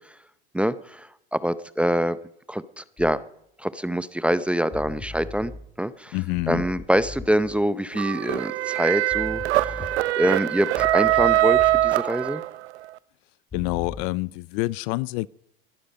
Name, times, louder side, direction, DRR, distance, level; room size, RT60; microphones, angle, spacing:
voice 1, 0.5-2.2 2.5-3.2 3.6-5.5 5.8-6.2 6.5-12.4, equal, 5° right, 0.6 m, -25 dB
sound 1, 3.0-3.2 4.7-5.7 6.4-7.6 9.1-10.2 10.8-12.0 13.5-14.0, left 3 dB, 20° left, 1.7 m, -39 dB
voice 2, 6.1-6.6 13.5-15.3, left 22 dB, 55° left, 0.5 m, -27 dB
sound 2, 7.9-12.8, right 15 dB, 80° right, 0.7 m, -22 dB
20.5 x 12.0 x 5.2 m
hypercardioid pair, 105°, 33 cm